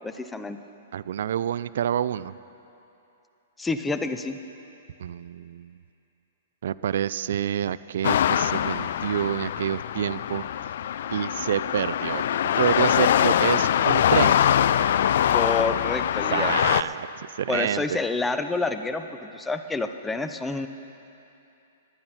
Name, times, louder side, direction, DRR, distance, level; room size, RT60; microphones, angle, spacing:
voice 1, 0.0-0.6 3.6-4.4 15.3-16.5 17.5-20.7, left 3 dB, 10° left, 8 dB, 0.6 m, -28 dB
voice 2, 0.9-2.3 5.0-5.8 6.6-10.4 11.1-12.2 12.5-14.4 16.3-18.0, right 10 dB, 70° right, 17 dB, 0.3 m, -28 dB
sound 1, 8.0-16.8, left 10 dB, 65° left, 0.3 m, -23 dB
18.5 x 10.5 x 4.3 m, 2.8 s
hypercardioid pair, 125°, 0 cm